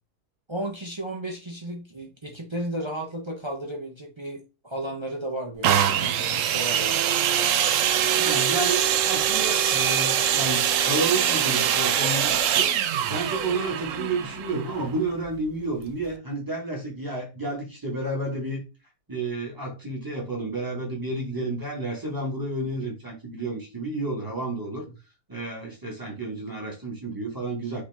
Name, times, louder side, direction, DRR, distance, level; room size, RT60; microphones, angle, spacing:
voice 1, 0.5-7.0, right 1 dB, 40° right, 0.4 m, -34 dB
sound 1, 5.6-15.3 16.0-16.1, right 9 dB, 70° right, 0.7 m, -23 dB
voice 2, 8.1-12.7 13.1-18.6 19.1-24.8 25.3-27.8, right 2 dB, 15° right, 1.2 m, -31 dB
5.2 x 2.8 x 3.4 m
omnidirectional pair, 1.8 m